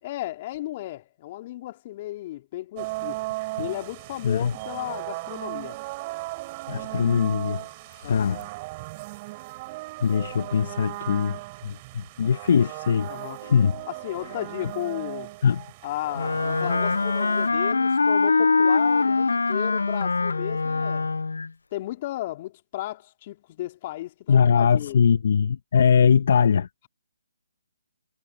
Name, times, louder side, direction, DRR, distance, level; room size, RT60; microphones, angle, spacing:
voice 1, 0.0-3.3 3.6-5.8 8.0-8.4 13.1-13.4 13.9-15.3 15.8-21.1 21.7-25.0, left 15 dB, 35° left, 3.4 m, -34 dB
sound 1, 2.8-17.5, right 22 dB, 30° right, 4.4 m, -37 dB
voice 2, 6.7-7.6 8.0-8.4 10.0-11.4 11.6-13.1 13.4-13.7 15.4-15.6 24.3-26.7, left 7 dB, 55° left, 1.4 m, -21 dB
Wind instrument woodwind instrument, 16.1-21.5, left 4 dB, 80° left, 0.5 m, -23 dB
hypercardioid pair, 150°, 0 cm